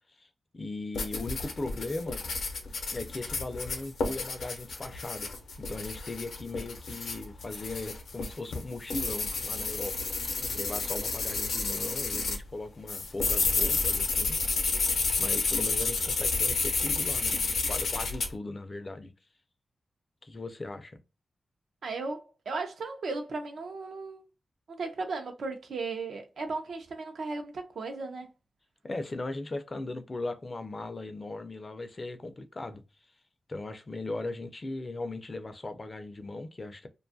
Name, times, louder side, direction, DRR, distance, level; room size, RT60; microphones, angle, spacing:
voice 1, 0.5-2.2 2.9-5.3 5.6-10.3 10.5-14.4 15.2-17.4 17.6-19.1 20.2-21.0 28.8-32.8 33.5-36.9, left 2 dB, 30° left, 0.4 m, -38 dB
sound 1, 1.0-12.4 12.9-18.3, left 4 dB, 85° left, 0.6 m, -30 dB
voice 2, 21.8-24.2 24.7-28.3, right 3 dB, 75° right, 0.6 m, -36 dB
2.5 x 2.3 x 2.5 m
wide cardioid pair, 140°, 0 cm